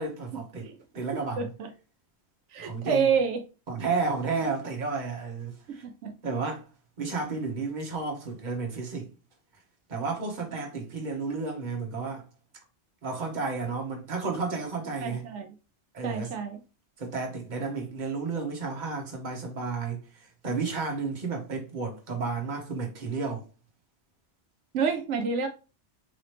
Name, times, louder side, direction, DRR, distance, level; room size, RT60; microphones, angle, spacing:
voice 1, 0.0-0.7 0.9-1.4 2.6-3.1 3.7-5.8 6.2-6.6 7.0-9.1 9.9-12.2 13.0-15.2 15.9-16.4 17.0-20.0 20.4-23.4, right 4 dB, 45° right, 1.1 m, -32 dB
voice 2, 1.4-1.7 2.5-3.4 4.4-4.5 5.7-6.1 15.0-15.5 16.0-16.6 24.7-25.5, right 6 dB, 85° right, 0.9 m, -28 dB
4.0 x 2.9 x 3.2 m
omnidirectional pair, 1.2 m